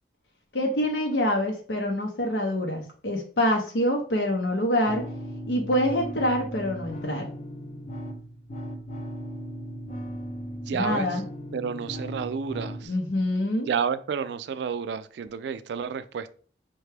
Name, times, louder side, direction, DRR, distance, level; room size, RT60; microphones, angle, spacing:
voice 1, 0.5-5.1 5.5-7.3 10.7-11.2 12.9-13.7, left 1 dB, 75° left, 0.7 m, -26 dB
sound 1, 4.9-12.9, equal, 40° left, 0.6 m, -37 dB
voice 2, 10.7-11.1 11.5-12.9 13.7-16.3, right 6 dB, 70° right, 0.3 m, -30 dB
5.5 x 2.2 x 3.2 m
head